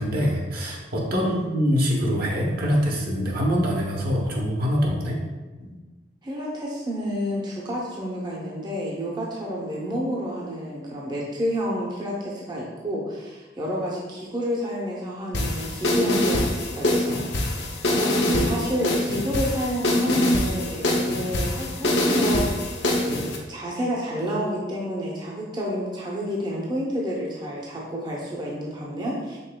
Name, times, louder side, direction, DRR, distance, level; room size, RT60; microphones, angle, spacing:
voice 1, 0.0-5.2 5.6-5.7, equal, 60° right, -2 dB, 0.8 m, -24 dB
voice 2, 1.1-1.5 6.2-17.5 17.9-22.5 22.7-29.5, equal, 25° right, -4 dB, 0.6 m, -30 dB
sound 1, 15.3-23.4, left 1 dB, 80° left, 0.7 m, -24 dB
5.3 x 3.5 x 2.2 m, 1.3 s
head